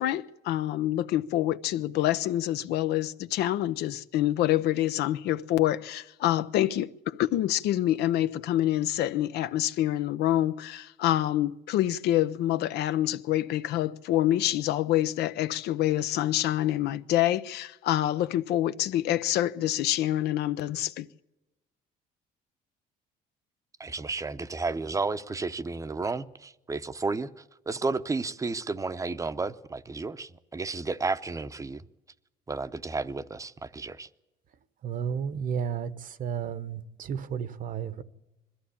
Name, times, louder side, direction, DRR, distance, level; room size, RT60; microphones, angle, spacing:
voice 1, 0.0-21.1, left 13 dB, 80° left, 0.7 m, -26 dB
voice 2, 23.8-31.8 32.5-34.1, right 3 dB, 20° right, 0.7 m, -32 dB
voice 3, 34.8-38.0, right 7 dB, 55° right, 1.0 m, -32 dB
21.5 x 14.5 x 8.4 m
cardioid pair, 110°, 17 cm